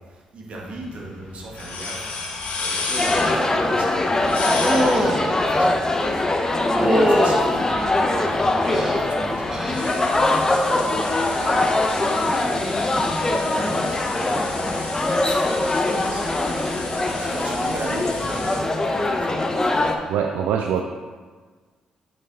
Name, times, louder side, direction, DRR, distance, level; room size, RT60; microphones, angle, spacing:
voice 1, 0.0-15.4 15.8-19.4, right 2 dB, 55° right, -2 dB, 1.6 m, -37 dB
sound 1, 0.6-18.6, left 3 dB, 65° left, 1.2 m, -34 dB
sound 2, 3.0-20.0, left 2 dB, 25° left, 0.8 m, -22 dB
sound 3, 4.6-5.2 6.7-7.4 8.2-9.0 9.5-9.9 10.3-10.7 12.3-12.4, equal, 20° right, 1.1 m, -23 dB
voice 2, 20.1-20.8, right 8 dB, 75° right, 4 dB, 0.3 m, -23 dB
7.6 x 4.1 x 3.8 m, 1.5 s
hypercardioid pair, 50°, 3 cm